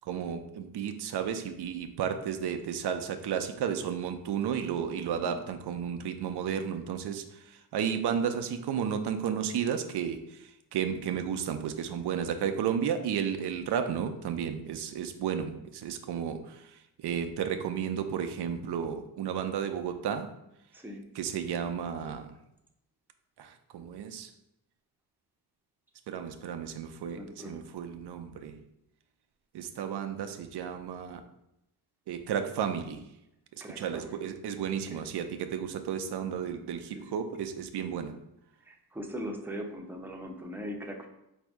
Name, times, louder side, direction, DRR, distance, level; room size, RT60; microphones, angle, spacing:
voice 1, 0.1-20.3 21.1-22.3 23.4-24.3 26.1-28.6 29.5-31.2 32.1-33.0 33.7-38.1, right 8 dB, 85° right, 7 dB, 0.5 m, -33 dB
voice 2, 27.1-27.6 33.6-34.2 34.9-35.0 36.9-37.1 38.7-41.1, equal, 5° right, 2 dB, 0.6 m, -40 dB
4.1 x 2.6 x 4.7 m, 0.85 s
cardioid pair, 85°, 39 cm